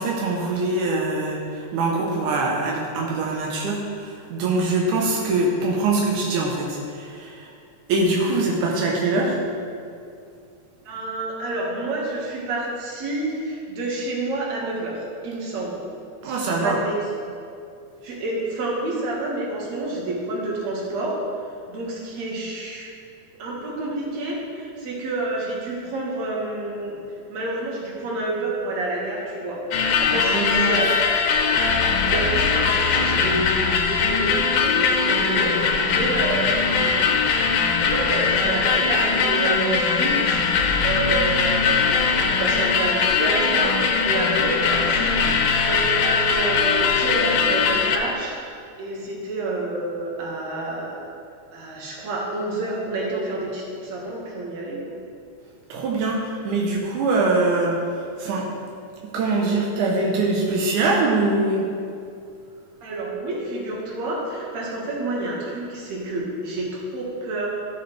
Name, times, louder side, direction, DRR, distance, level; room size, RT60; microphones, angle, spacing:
voice 1, 0.0-7.5 7.9-9.4 16.2-16.8 30.1-30.8 55.7-58.5 59.1-61.7, right 2 dB, 90° right, -2 dB, 2.4 m, -23 dB
voice 2, 10.9-15.0 15.2-15.8 16.2-17.1 18.0-21.2 21.7-22.9 23.4-27.0 27.3-36.9 37.8-48.3 48.8-51.0 51.5-54.9 62.8-67.5, right 2 dB, 65° right, -3 dB, 2.8 m, -29 dB
sound 1, 29.7-48.0, left 5 dB, 80° left, 2.2 m, -21 dB
14.0 x 6.9 x 3.3 m, 2.4 s
omnidirectional pair, 3.4 m